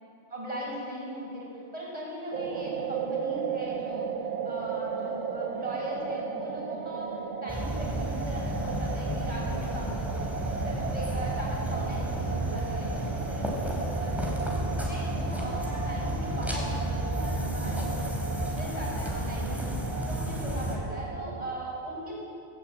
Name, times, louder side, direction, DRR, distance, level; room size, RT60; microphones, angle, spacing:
voice 1, 0.3-4.1 4.4-10.2 10.5-18.1 18.3-19.7 20.1-22.1, equal, 30° right, -4 dB, 6.7 m, -39 dB
sound 1, 2.3-21.5, right 6 dB, 75° right, 1.5 m, -36 dB
sound 2, 7.5-20.8, right 1 dB, ahead, 4.0 m, -32 dB
18.5 x 18.0 x 8.7 m, 2.6 s
omnidirectional pair, 1.2 m